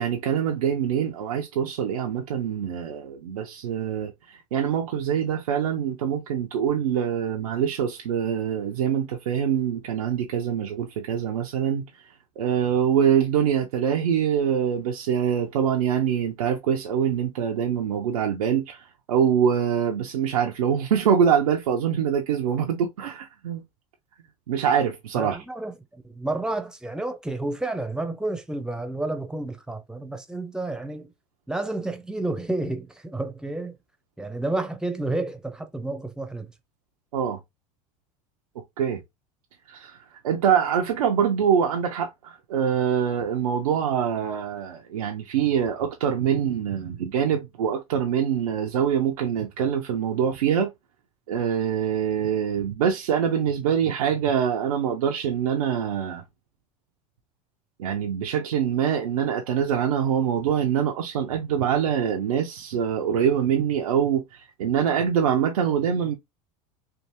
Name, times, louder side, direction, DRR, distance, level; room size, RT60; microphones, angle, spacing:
voice 1, 0.0-11.8 12.4-23.6 24.5-25.4 37.1-37.4 38.8-39.0 39.7-40.0 40.2-50.7 51.3-56.2 57.8-66.2, right 8 dB, 90° right, 0.6 m, -24 dB
voice 2, 25.1-31.1 31.5-33.7 34.2-36.5, right 2 dB, 5° right, 0.7 m, -30 dB
3.4 x 2.4 x 2.8 m
hypercardioid pair, 95°, 18 cm